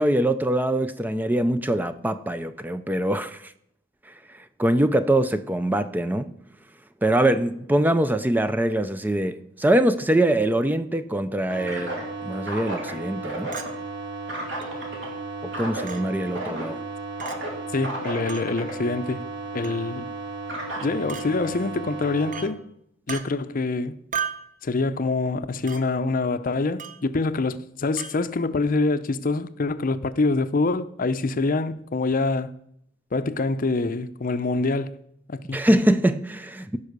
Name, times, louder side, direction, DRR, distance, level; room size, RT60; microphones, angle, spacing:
voice 1, 0.0-3.5 4.6-6.3 7.0-11.9 12.2-13.5 15.4-16.8 35.5-36.8, right 1 dB, 10° right, 0.4 m, -23 dB
sound 1, 11.5-22.4, right 2 dB, 65° right, 3.4 m, -33 dB
Chink clink, 13.5-13.7 14.6-14.7 15.9-16.0 17.2-17.4 18.3-18.5 19.6-19.9 21.1-21.3 22.3-22.5 23.1-23.2 24.1-24.5 25.7-25.8 26.8-27.0 28.0-28.1, right 7 dB, 45° right, 1.0 m, -33 dB
voice 2, 17.7-19.2 19.5-20.1 20.8-22.6 23.1-24.0 24.6-32.5 33.1-34.9 35.3-35.6, left 3 dB, 45° left, 0.6 m, -25 dB
15.5 x 5.5 x 6.6 m
head